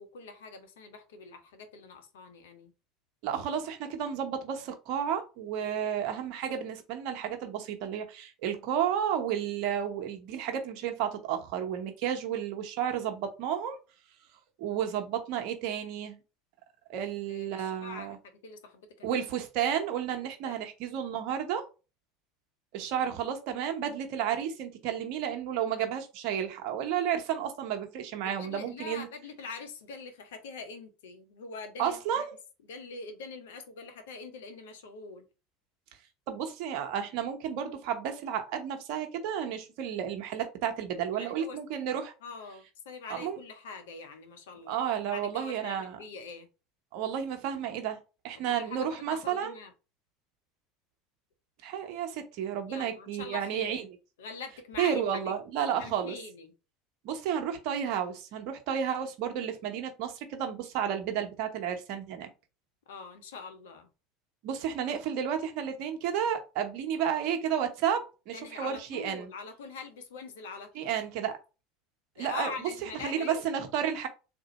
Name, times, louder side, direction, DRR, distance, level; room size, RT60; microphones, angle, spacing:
voice 1, 0.0-2.7 17.3-19.2 20.4-20.6 22.9-23.1 28.2-32.2 32.7-35.3 41.1-41.6 42.2-46.5 48.3-49.7 52.7-53.9 54.2-56.5 62.9-63.9 68.3-71.0 72.2-73.4, left 4 dB, 75° left, 0.8 m, -44 dB
voice 2, 3.2-13.8 14.6-16.2 16.9-18.2 19.0-21.7 22.7-29.1 31.8-32.3 36.3-42.1 43.1-43.4 44.7-46.0 46.9-48.0 48.2-49.6 51.6-53.8 54.8-56.2 57.0-62.3 64.4-69.3 70.7-71.4 72.2-72.5 72.8-74.1, right 9 dB, 60° right, 0.9 m, -32 dB
3.8 x 2.6 x 4.1 m
hypercardioid pair, 75°, 0 cm